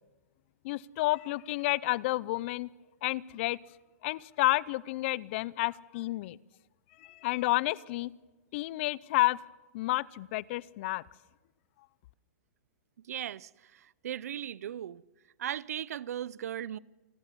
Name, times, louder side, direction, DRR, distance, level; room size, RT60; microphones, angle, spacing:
voice 1, 0.6-2.7 3.0-3.6 4.0-6.4 7.0-8.1 8.5-9.4 9.7-11.0, left 19 dB, 50° left, 0.6 m, -30 dB
voice 2, 13.1-15.0 15.4-16.8, right 10 dB, 80° right, 0.6 m, -37 dB
28.5 x 11.0 x 9.7 m
hypercardioid pair, 140°, 8 cm